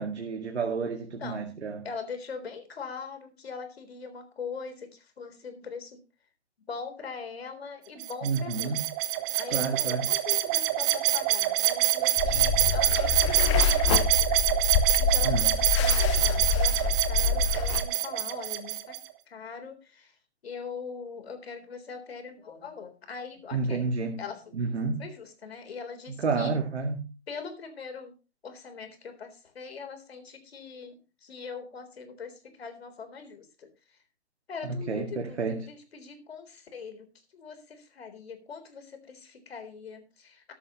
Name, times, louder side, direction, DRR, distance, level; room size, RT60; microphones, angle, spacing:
voice 1, 0.0-1.8 8.2-8.8 9.5-10.1 15.2-15.4 23.5-24.2 24.5-25.0 26.2-27.1 34.9-35.6, right 4 dB, 70° right, 2.1 m, -30 dB
voice 2, 1.8-6.0 6.7-8.8 9.3-14.5 15.0-19.0 19.3-20.2 20.4-23.8 24.2-24.5 25.0-26.5 27.3-28.1 28.4-34.0 34.5-37.1 37.3-40.5, left 5 dB, 60° left, 3.8 m, -42 dB
sound 1, 8.0-19.0, right 15 dB, 15° right, 0.6 m, -26 dB
sound 2, 12.2-17.8, left 6 dB, 25° left, 0.9 m, -26 dB
13.5 x 11.5 x 3.0 m
figure-of-eight pair, 135°, 35 cm